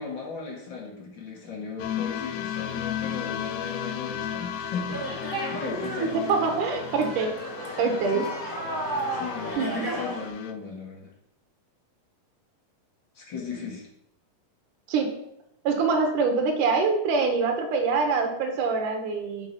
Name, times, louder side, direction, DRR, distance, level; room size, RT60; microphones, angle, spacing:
voice 1, 0.0-6.6 8.1-8.2 9.1-11.1 13.2-13.8, left 5 dB, 40° left, -3 dB, 2.1 m, -36 dB
sound 1, 1.8-10.5, left 9 dB, 80° left, 2.0 m, -35 dB
sound 2, 4.9-10.3, right 1 dB, 10° right, 1.0 m, -34 dB
voice 2, 6.0-7.4 7.8-8.3 9.6-9.9 14.9-15.2 15.6-19.5, right 4 dB, 75° right, 4 dB, 2.6 m, -25 dB
8.0 x 5.0 x 5.4 m, 0.77 s
omnidirectional pair, 3.9 m